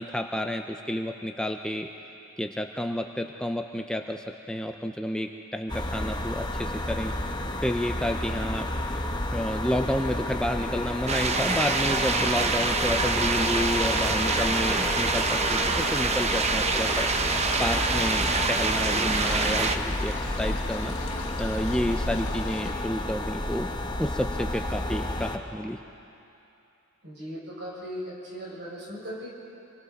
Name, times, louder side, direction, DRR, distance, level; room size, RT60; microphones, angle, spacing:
voice 1, 0.0-1.9 2.4-7.1 7.6-8.7 9.3-17.1 17.6-20.9 21.4-23.7 24.0-25.8, equal, 5° left, 4 dB, 0.5 m, -30 dB
sound 1, 5.7-25.4, left 1 dB, 20° left, 1.0 m, -31 dB
sound 2, 11.1-19.8, right 4 dB, 30° right, 0.8 m, -26 dB
sound 3, 17.3-22.7, left 3 dB, 80° left, 1.3 m, -38 dB
voice 2, 27.0-29.3, equal, 55° right, -5 dB, 6.6 m, -38 dB
27.0 x 23.0 x 4.2 m, 2.8 s
head